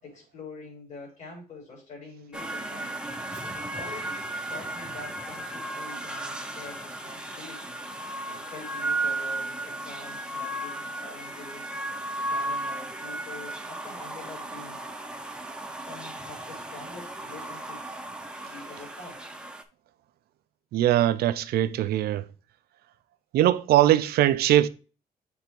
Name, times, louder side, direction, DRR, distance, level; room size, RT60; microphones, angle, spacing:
voice 1, 0.0-3.0 3.7-7.8 8.3-11.7 12.3-14.8 15.8-18.0 18.4-19.2, left 3 dB, 50° left, 3.9 m, -45 dB
sound 1, 2.3-19.6, right 2 dB, 5° right, 0.7 m, -35 dB
voice 2, 20.7-22.2 23.3-24.7, right 13 dB, 90° right, 0.6 m, -21 dB
7.0 x 3.6 x 4.4 m
cardioid pair, 150°, 16 cm